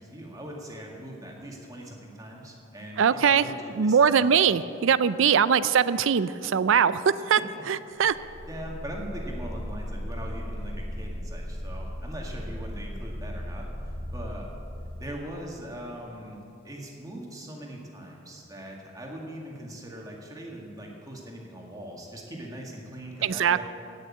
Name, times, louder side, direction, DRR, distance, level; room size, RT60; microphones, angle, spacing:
voice 1, 0.0-4.5 8.4-13.7 14.1-14.5 15.0-16.4 16.6-23.6, right 1 dB, 15° right, -1 dB, 1.9 m, -41 dB
voice 2, 3.0-3.4 3.8-7.0 7.3-7.4 7.7-8.2 23.2-23.6, right 7 dB, 60° right, 16 dB, 0.4 m, -21 dB
sound 1, 8.0-15.7, equal, 45° left, 1.2 m, -37 dB
17.0 x 6.5 x 8.6 m, 2.7 s
head